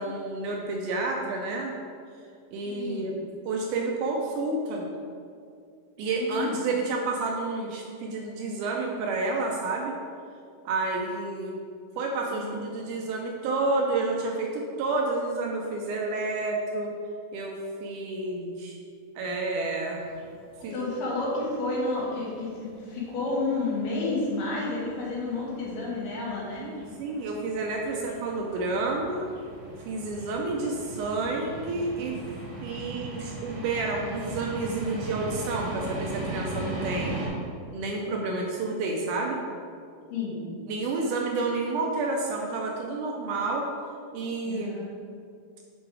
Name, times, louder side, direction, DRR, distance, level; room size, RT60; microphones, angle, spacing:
voice 1, 0.0-1.8 2.5-3.1 3.5-4.9 6.0-9.9 10.7-11.6 12.0-16.9 17.3-18.8 19.2-20.1 20.6-20.9 26.5-29.3 29.8-32.2 32.6-37.2 37.7-39.4 40.7-43.7 44.1-44.7, right 3 dB, 80° right, 0 dB, 1.9 m, -30 dB
voice 2, 2.7-3.2 6.1-6.6 12.3-12.9 20.6-26.7 38.1-38.2 40.1-40.4 44.5-44.9, left 3 dB, 75° left, -5 dB, 2.9 m, -31 dB
sound 1, 19.9-37.3, right 2 dB, 60° right, 2.5 m, -39 dB
6.9 x 3.5 x 4.7 m, 2.3 s
omnidirectional pair, 3.9 m